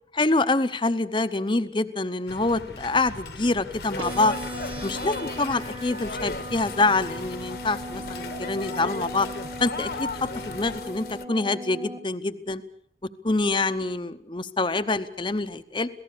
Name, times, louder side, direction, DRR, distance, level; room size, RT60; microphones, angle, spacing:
voice 1, 0.1-4.4 4.8-9.3 9.6-12.6 13.2-15.9, left 2 dB, 25° left, 12 dB, 0.9 m, -26 dB
sound 1, 2.3-10.8, left 3 dB, 70° left, 1.5 m, -42 dB
sound 2, 3.7-11.2, left 3 dB, 55° left, 1.2 m, -37 dB
sound 3, 4.0-12.0, equal, 30° right, 1.7 m, -38 dB
26.5 x 18.0 x 6.7 m, 0.69 s
head